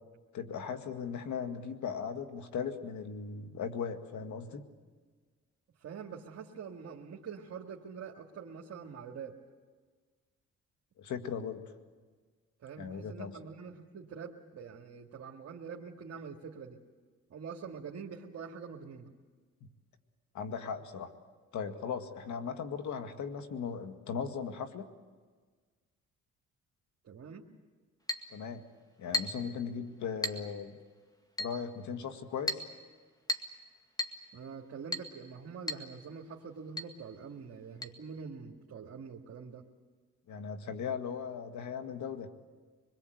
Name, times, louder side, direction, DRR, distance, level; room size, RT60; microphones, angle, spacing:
voice 1, 0.3-4.7 11.0-11.6 12.8-13.4 20.3-21.1 21.5-24.9 28.3-28.6 29.0-30.8 31.4-32.6 40.3-42.3, left 6 dB, 70° left, 7 dB, 2.1 m, -38 dB
voice 2, 5.8-9.4 12.6-16.8 17.3-19.1 27.0-27.5 34.3-39.6, right 6 dB, 55° right, -1 dB, 2.1 m, -45 dB
Chink clink, 28.1-28.3 29.1-29.5 30.2-30.5 31.4-31.6 32.5-32.7 33.3-33.6 34.0-34.2 34.9-35.1 35.7-35.9 36.1-36.2 36.8-36.9 37.8-37.9, left 2 dB, 10° left, 2.0 m, -34 dB
25.5 x 21.5 x 8.0 m, 1.5 s
cardioid pair, 90°, 30 cm